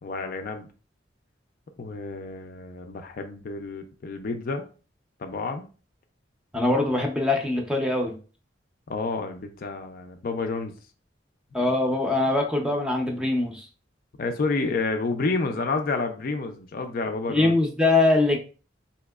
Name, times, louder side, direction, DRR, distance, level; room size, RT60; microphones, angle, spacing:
voice 1, 0.0-0.7 1.8-4.7 5.2-5.7 8.9-10.7 11.6-11.7 14.2-17.5, left 3 dB, 50° left, 6 dB, 0.4 m, -29 dB
voice 2, 6.5-8.1 11.5-13.7 17.3-18.4, left 2 dB, 5° right, 1 dB, 0.5 m, -22 dB
4.0 x 2.8 x 2.3 m, 0.36 s
head